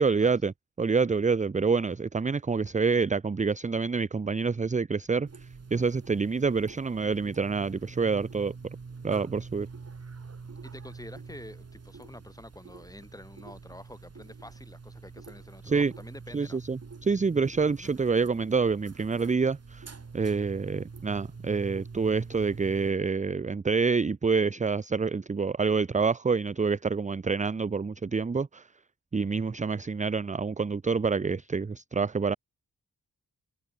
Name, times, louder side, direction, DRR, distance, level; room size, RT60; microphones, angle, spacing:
voice 1, 0.0-8.5 9.0-9.7 15.7-15.9 16.3-19.9 20.1-28.7 29.1-32.4, right 4 dB, 20° right, 0.5 m, -27 dB
sound 1, 5.3-22.9, right 4 dB, 40° right, 2.9 m, -46 dB
voice 2, 10.6-16.6, left 1 dB, 10° left, 6.0 m, -47 dB
wide cardioid pair, 120°, 37 cm